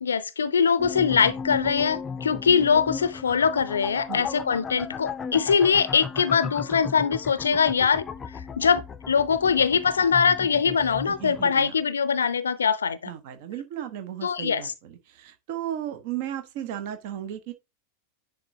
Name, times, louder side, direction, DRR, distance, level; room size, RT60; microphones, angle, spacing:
voice 1, 0.0-8.0 8.6-13.1 14.2-14.7, left 6 dB, 70° left, 0.5 m, -22 dB
sound 1, 0.8-11.7, left 5 dB, 20° left, 0.6 m, -36 dB
voice 2, 11.0-11.8 13.0-17.5, right 11 dB, 50° right, 1.0 m, -35 dB
10.0 x 3.7 x 2.8 m
figure-of-eight pair, 90°, 0 cm